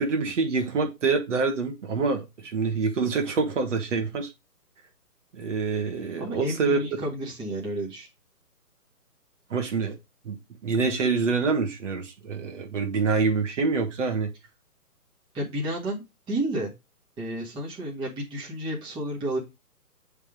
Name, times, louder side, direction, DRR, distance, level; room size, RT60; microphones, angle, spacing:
voice 1, 0.0-4.3 5.3-6.8 9.5-10.0 10.2-10.3 10.6-14.3, right 4 dB, 50° right, 1.5 m, -26 dB
voice 2, 6.2-8.1 15.3-16.7 17.2-19.4, right 1 dB, 10° right, 1.6 m, -31 dB
8.1 x 3.6 x 3.7 m
hypercardioid pair, 145°, 46 cm